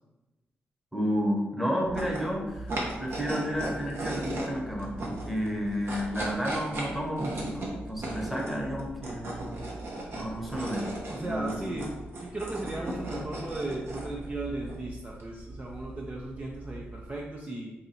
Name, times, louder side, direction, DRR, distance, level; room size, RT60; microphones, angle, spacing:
voice 1, 0.9-9.7 10.1-10.9 11.2-11.5, equal, ahead, -1 dB, 0.9 m, -31 dB
sound 1, 1.8-17.2, right 1 dB, 60° right, 0.9 m, -37 dB
voice 2, 11.1-11.9 12.2-17.7, right 2 dB, 30° right, -2 dB, 0.5 m, -36 dB
2.7 x 2.6 x 4.1 m, 1.1 s
cardioid pair, 60°, 5 cm